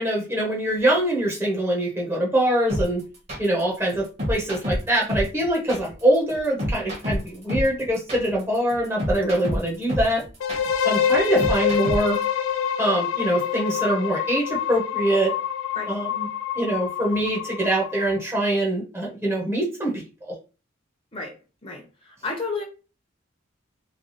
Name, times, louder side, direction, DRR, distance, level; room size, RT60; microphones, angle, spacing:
voice 1, 0.0-3.0 3.4-10.2 10.8-12.2 12.8-15.3 15.9-16.3 16.5-20.3, right 1 dB, 10° right, -2 dB, 1.0 m, -24 dB
sound 1, 2.7-12.2, equal, 30° right, 1.2 m, -28 dB
sound 2, 10.4-18.2, left 8 dB, 80° left, 0.4 m, -26 dB
voice 2, 21.6-22.6, left 3 dB, 30° left, 1 dB, 1.0 m, -31 dB
3.3 x 2.3 x 4.0 m, 0.33 s
head